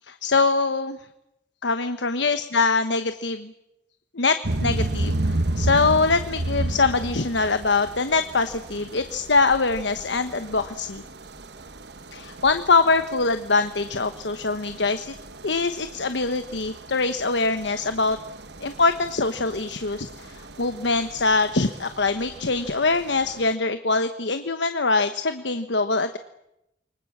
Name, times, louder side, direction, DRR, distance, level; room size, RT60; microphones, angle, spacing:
voice 1, 0.1-1.0 1.6-3.5 4.1-11.0 12.1-15.1 15.4-18.2 18.6-26.2, left 3 dB, 80° left, 9 dB, 1.2 m, -23 dB
sound 1, 4.4-23.5, right 1 dB, 65° right, 1.3 m, -33 dB
29.0 x 24.5 x 7.4 m, 0.86 s
head